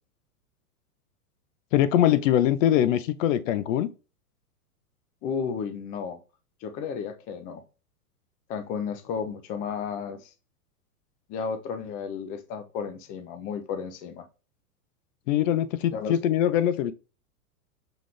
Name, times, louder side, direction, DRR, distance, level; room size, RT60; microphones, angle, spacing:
voice 1, 1.7-3.9 15.3-16.9, left 11 dB, 55° left, 0.6 m, -22 dB
voice 2, 5.2-6.2 6.6-7.6 8.5-10.3 11.3-14.3 15.9-16.2, left 6 dB, 20° left, 0.4 m, -33 dB
5.9 x 2.5 x 3.4 m
hypercardioid pair, 110°, 46 cm